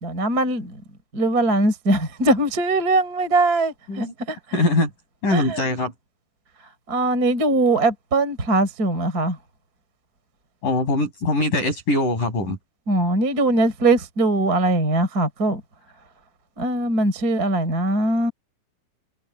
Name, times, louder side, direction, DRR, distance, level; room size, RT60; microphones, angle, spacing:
voice 1, 0.0-0.7 1.1-4.6 5.3-5.6 6.9-9.4 12.9-15.6 16.6-18.3, right 2 dB, 20° right, 4.2 m, -21 dB
voice 2, 4.5-4.9 5.2-5.9 10.6-12.6, left 2 dB, 40° left, 9.1 m, -22 dB
omnidirectional pair, 5.8 m